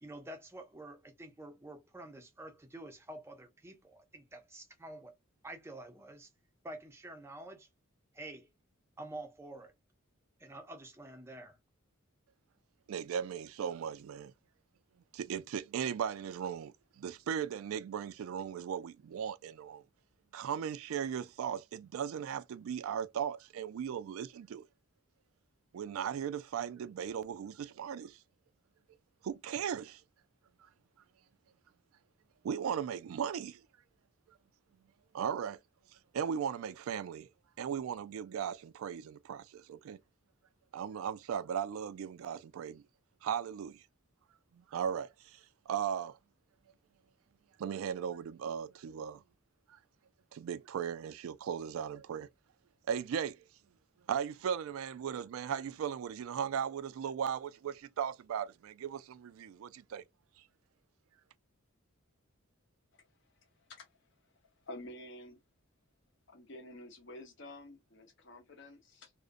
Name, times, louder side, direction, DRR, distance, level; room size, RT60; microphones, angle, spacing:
voice 1, 0.0-5.1 5.4-6.3 6.6-7.7 8.1-8.5 9.0-9.7 10.4-11.6, right 1 dB, 10° right, 0.5 m, -48 dB
voice 2, 12.9-14.3 15.1-19.8 20.3-24.7 25.7-28.2 29.2-30.0 32.4-33.6 35.1-35.6 36.1-37.3 37.6-40.0 40.7-42.8 43.2-43.8 44.5-46.2 47.6-49.2 49.7-49.8 50.3-52.3 52.9-53.5 54.1-60.0, right 8 dB, 80° right, 0.3 m, -37 dB
voice 3, 64.6-65.4 66.3-69.1, left 1 dB, 60° left, 0.7 m, -49 dB
2.4 x 2.1 x 2.5 m
head